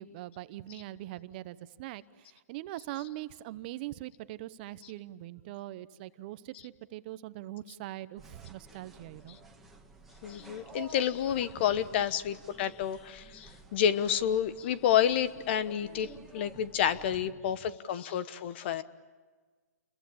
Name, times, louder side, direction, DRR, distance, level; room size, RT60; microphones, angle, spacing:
voice 1, 0.0-9.4 16.5-16.6, right 15 dB, 35° right, 14 dB, 0.9 m, -42 dB
sound 1, 8.2-17.3, right 3 dB, ahead, 2.2 m, -52 dB
voice 2, 10.2-18.8, left 9 dB, 40° left, 14 dB, 1.2 m, -29 dB
29.0 x 22.5 x 8.7 m, 1.4 s
hypercardioid pair, 150°, 9 cm